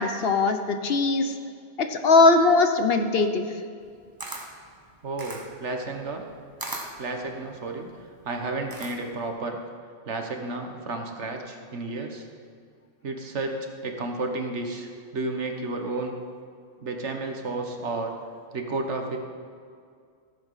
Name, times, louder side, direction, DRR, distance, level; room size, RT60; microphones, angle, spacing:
voice 1, 0.0-1.3 1.8-3.5, left 3 dB, 55° left, 7 dB, 0.9 m, -20 dB
Camera, 3.8-9.3, right 1 dB, 20° right, 1.2 m, -39 dB
voice 2, 5.0-6.2 7.0-7.9 8.2-9.6 10.1-12.2 13.0-13.6 13.8-16.1 16.8-18.1 18.5-19.2, right 3 dB, 65° right, 4 dB, 1.5 m, -32 dB
15.5 x 7.6 x 5.6 m, 2.2 s
omnidirectional pair, 1.3 m